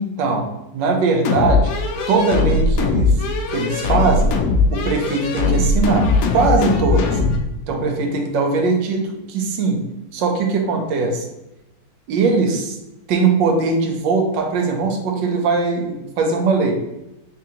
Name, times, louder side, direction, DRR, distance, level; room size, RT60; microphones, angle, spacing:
voice 1, 0.0-1.7 2.1-3.2 3.5-4.4 4.7-7.2 7.7-11.2 12.1-12.8 13.1-16.7, right 4 dB, 75° right, 3 dB, 1.3 m, -20 dB
sound 1, 1.3-7.4, left 3 dB, 80° left, 0.8 m, -19 dB
3.7 x 3.6 x 2.8 m, 0.93 s
omnidirectional pair, 2.0 m